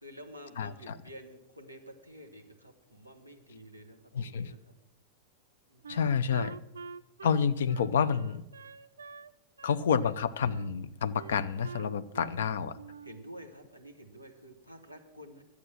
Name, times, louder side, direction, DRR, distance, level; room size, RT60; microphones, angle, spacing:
voice 1, 0.0-4.7 5.7-5.9 12.3-12.6 13.0-15.4, equal, 90° left, 4 dB, 1.5 m, -50 dB
voice 2, 0.6-1.0 4.1-4.5 5.9-6.6 7.2-8.4 9.6-12.8, left 6 dB, 60° left, 13 dB, 0.5 m, -29 dB
Wind instrument woodwind instrument, 5.8-9.3 9.6-10.7 11.1-12.4 12.7-13.2, right 5 dB, 75° right, 0.3 m, -47 dB
12.0 x 8.3 x 7.7 m, 0.90 s
figure-of-eight pair, 90°, 0 cm